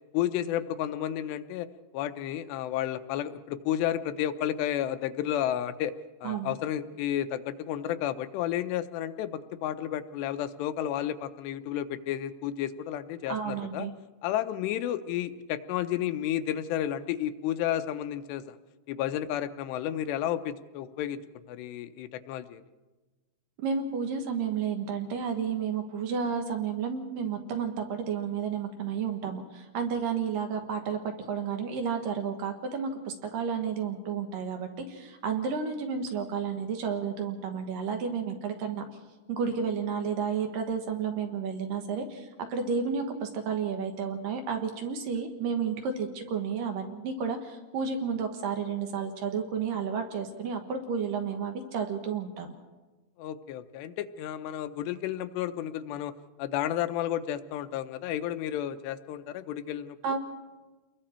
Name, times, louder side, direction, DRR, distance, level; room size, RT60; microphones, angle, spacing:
voice 1, 0.1-1.7 1.9-5.9 6.2-13.9 14.2-18.6 18.9-21.2 21.5-22.6 53.2-56.1 56.4-60.0, left 11 dB, 90° left, 10 dB, 3.0 m, -32 dB
voice 2, 6.2-6.5 13.3-13.9 23.6-38.8 39.3-52.5 60.0-60.2, right 6 dB, 65° right, 5 dB, 2.8 m, -31 dB
29.0 x 21.5 x 4.4 m, 1.2 s
omnidirectional pair, 4.8 m